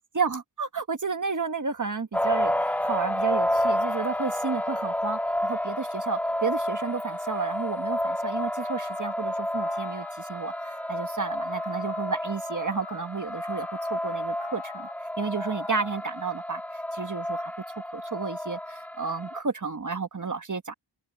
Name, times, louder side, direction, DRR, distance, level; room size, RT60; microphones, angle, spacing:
voice 1, 0.0-14.9 15.2-16.6 16.9-20.7, right 5 dB, 40° right, 1.5 m, -32 dB
sound 1, 2.1-19.4, left 1 dB, 5° left, 0.5 m, -30 dB
sound 2, 8.6-9.1 9.6-10.1 10.5-11.1 11.5-12.0 12.5-13.0 13.4-14.0 14.4-14.9 15.4-15.9, left 7 dB, 80° left, 4.6 m, -46 dB
open air
wide cardioid pair, 80°, 48 cm